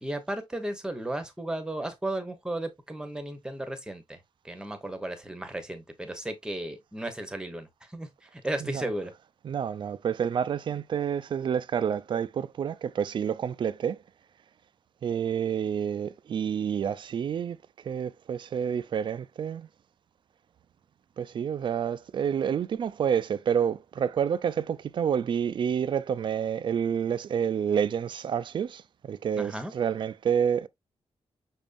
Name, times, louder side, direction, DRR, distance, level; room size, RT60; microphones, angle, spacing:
voice 1, 0.0-4.2 4.4-9.1 29.4-29.7, right 1 dB, 5° right, 0.9 m, -35 dB
voice 2, 9.4-14.0 15.0-17.6 17.8-19.7 21.2-30.7, right 8 dB, 50° right, 0.4 m, -29 dB
6.0 x 3.5 x 2.5 m
wide cardioid pair, 170°, 11 cm